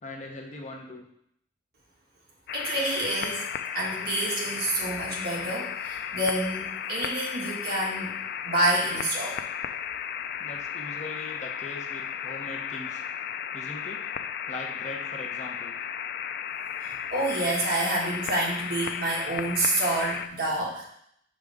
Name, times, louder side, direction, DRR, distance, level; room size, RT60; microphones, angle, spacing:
voice 1, 0.0-1.1 10.4-13.0 13.5-14.1 14.5-15.8, left 2 dB, 40° left, 2 dB, 0.8 m, -40 dB
sound 1, 2.5-20.3, left 8 dB, 55° left, 0.3 m, -34 dB
voice 2, 2.5-3.4 3.7-8.1 8.4-9.4 16.8-20.8, right 1 dB, 55° right, -3 dB, 1.7 m, -28 dB
5.8 x 5.2 x 3.5 m, 0.72 s
head